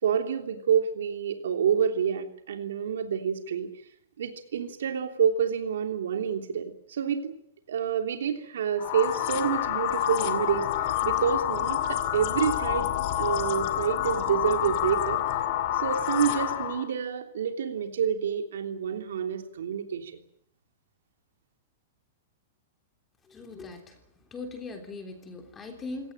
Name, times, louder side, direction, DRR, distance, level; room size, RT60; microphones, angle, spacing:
voice 1, 0.0-3.7 4.2-7.3 7.7-10.7 11.0-12.9 13.2-15.2 15.7-20.2, right 7 dB, 85° right, 5 dB, 3.2 m, -28 dB
sound 1, 8.8-16.9, left 12 dB, 40° left, 2.5 m, -28 dB
voice 2, 23.3-23.9 24.3-26.1, left 3 dB, 15° left, 4 dB, 3.4 m, -40 dB
26.5 x 18.0 x 9.1 m, 0.74 s
supercardioid pair, 165°, 0 cm